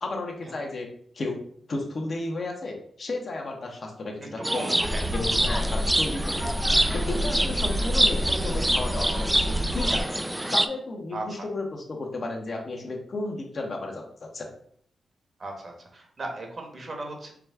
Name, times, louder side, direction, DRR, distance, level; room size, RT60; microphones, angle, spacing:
voice 1, 0.0-0.9 1.1-1.4 1.7-4.7 5.1-6.5 6.9-10.2 10.5-14.5, left 2 dB, 55° left, 1 dB, 0.9 m, -33 dB
sound 1, 4.4-10.7, right 1 dB, 10° right, 0.3 m, -26 dB
voice 2, 4.4-5.1 5.4-5.6 7.3-7.4 11.1-11.4 15.4-17.3, right 2 dB, 50° right, 2 dB, 1.2 m, -37 dB
sound 2, 4.8-10.0, equal, 80° right, 0.8 m, -29 dB
4.8 x 2.3 x 3.4 m, 0.62 s
cardioid pair, 65°, 0 cm